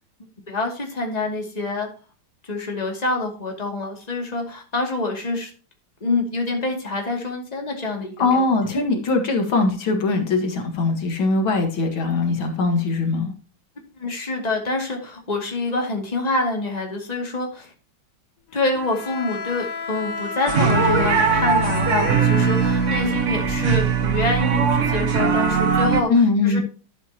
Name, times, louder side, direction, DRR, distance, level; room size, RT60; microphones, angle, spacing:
voice 1, 0.5-1.9 2.4-5.5 6.0-8.4 14.0-17.7 18.5-26.1 26.4-26.6, left 2 dB, 20° left, 1 dB, 2.4 m, -26 dB
voice 2, 8.2-13.3 26.1-26.6, left 3 dB, 75° left, 4 dB, 2.6 m, -21 dB
Bowed string instrument, 18.7-23.8, left 4 dB, 50° left, 1.2 m, -31 dB
sound 1, 20.5-26.0, right 5 dB, 45° right, 1.1 m, -20 dB
11.5 x 8.5 x 2.9 m, 0.37 s
omnidirectional pair, 2.2 m